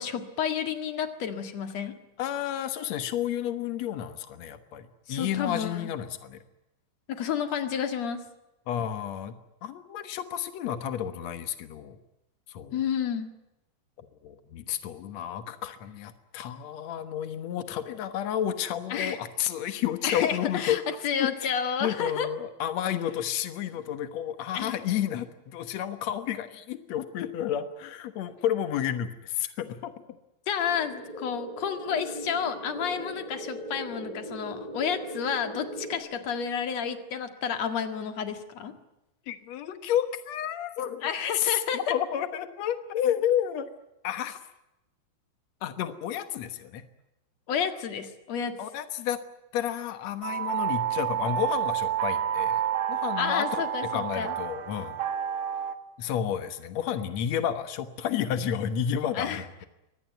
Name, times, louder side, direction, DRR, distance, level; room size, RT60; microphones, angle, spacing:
voice 1, 0.0-2.0 5.1-5.9 7.1-8.2 12.7-13.3 18.9-19.2 20.0-22.3 24.5-24.8 30.5-38.7 41.0-41.9 47.5-48.6 53.2-54.3 59.1-59.7, left 7 dB, 50° left, 8 dB, 2.4 m, -30 dB
voice 2, 2.2-6.4 8.7-9.3 9.6-12.0 12.5-12.8 14.2-20.8 21.2-21.5 21.8-29.9 39.3-41.1 41.4-43.7 44.0-44.4 45.6-46.8 48.6-49.2 49.5-52.6 52.9-55.0 56.0-59.6, left 10 dB, 85° left, 10 dB, 1.5 m, -31 dB
sound 1, 30.6-36.0, right 1 dB, 10° right, 4.8 m, -39 dB
sound 2, 50.2-55.7, right 10 dB, 90° right, 1.3 m, -29 dB
24.0 x 19.0 x 9.2 m, 0.92 s
omnidirectional pair, 5.1 m